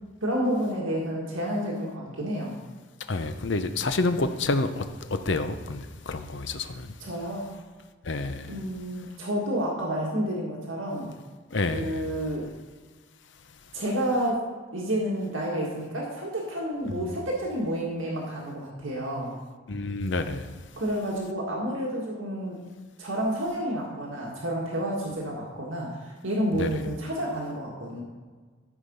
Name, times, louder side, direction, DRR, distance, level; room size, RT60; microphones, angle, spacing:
voice 1, 0.2-2.6 4.2-4.3 7.0-7.5 8.5-11.1 11.7-12.5 13.7-14.4 14.7-19.3 20.8-22.6 23.0-28.0, equal, 75° right, -3 dB, 1.9 m, -30 dB
voice 2, 3.1-4.8 5.1-6.9 8.0-8.5 11.5-12.0 19.7-20.5 26.6-26.7, left 3 dB, 60° left, 9 dB, 0.7 m, -28 dB
13.5 x 5.0 x 5.5 m, 1.5 s
head